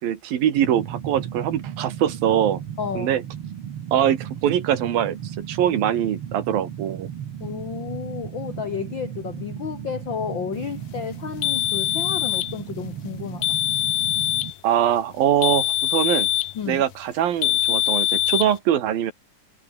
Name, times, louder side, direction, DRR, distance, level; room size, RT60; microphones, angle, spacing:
voice 1, 0.0-2.6 3.0-3.2 3.9-5.2 5.5-7.1 14.6-16.3 16.7-19.1, right 10 dB, 90° right, 3.8 m, -22 dB
sound 1, 0.6-14.5, right 9 dB, 55° right, 1.9 m, -35 dB
voice 2, 2.8-3.1 7.4-13.5 16.5-16.8, left 7 dB, 55° left, 1.4 m, -32 dB
sound 2, 11.4-12.5 13.4-14.5 15.4-16.6 17.4-18.5, left 14 dB, 70° left, 1.7 m, -23 dB
omnidirectional pair, 4.0 m